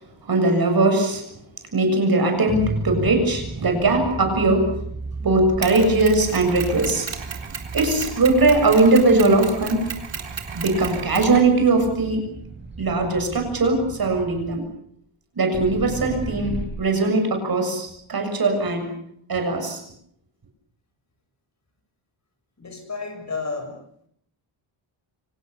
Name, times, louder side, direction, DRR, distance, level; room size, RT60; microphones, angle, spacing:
voice 1, 0.3-1.2 1.7-4.7 5.2-7.1 7.7-9.9 10.5-12.3 12.8-14.6 15.4-18.9 19.3-19.8, right 2 dB, 45° right, 5 dB, 7.1 m, -20 dB
sound 1, 2.5-14.6 15.5-16.7, right 3 dB, 20° right, 7.6 m, -34 dB
Mechanisms, 5.6-11.9, right 6 dB, 65° right, 4.1 m, -35 dB
voice 2, 22.6-23.8, left 4 dB, 35° left, 5 dB, 7.4 m, -31 dB
29.5 x 26.0 x 6.9 m, 0.70 s
wide cardioid pair, 160°, 49 cm